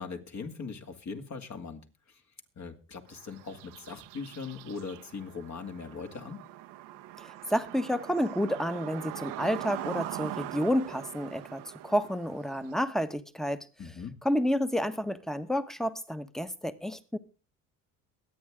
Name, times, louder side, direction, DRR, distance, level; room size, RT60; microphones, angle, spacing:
voice 1, 0.0-2.2 2.6-6.4 13.8-14.2, left 5 dB, 45° left, 2.5 m, -40 dB
sound 1, 3.1-12.8, right 14 dB, 80° right, 1.2 m, -42 dB
voice 2, 7.2-13.7 14.2-17.2, equal, ahead, 1.3 m, -30 dB
22.5 x 8.5 x 3.7 m
supercardioid pair, 70°, 40 cm